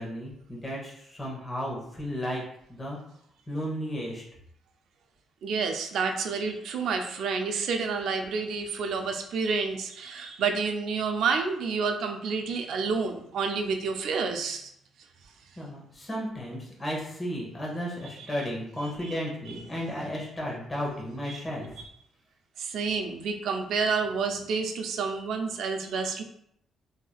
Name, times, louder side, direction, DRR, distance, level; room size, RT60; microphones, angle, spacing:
voice 1, 0.0-2.4 2.7-3.0 3.5-4.2 15.6-21.7, equal, 20° left, -4 dB, 1.0 m, -34 dB
voice 2, 5.4-14.7 18.2-18.3 18.8-19.2 19.5-19.6 21.3-21.4 22.6-26.2, right 5 dB, 75° right, 5 dB, 0.4 m, -29 dB
3.2 x 2.7 x 2.3 m, 0.72 s
cardioid pair, 90°, 0 cm